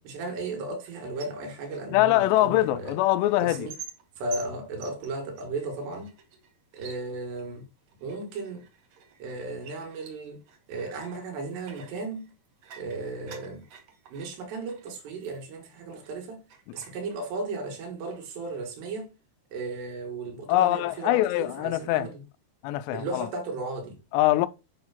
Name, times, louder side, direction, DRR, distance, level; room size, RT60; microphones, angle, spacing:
voice 1, 0.0-3.0 3.4-3.8 4.2-6.2 6.7-7.7 8.0-8.7 9.2-10.4 10.7-12.3 12.8-13.7 14.1-16.5 16.7-19.2 19.5-22.2 22.9-24.0, right 3 dB, 80° right, 3.9 m, -35 dB
sound 1, 0.8-16.2 16.5-17.7 18.0-18.7, right 6 dB, 60° right, 2.1 m, -50 dB
voice 2, 1.9-3.7 20.5-22.1 22.6-23.3 24.1-24.5, left 15 dB, 85° left, 2.7 m, -23 dB
8.6 x 3.5 x 5.7 m
omnidirectional pair, 4.9 m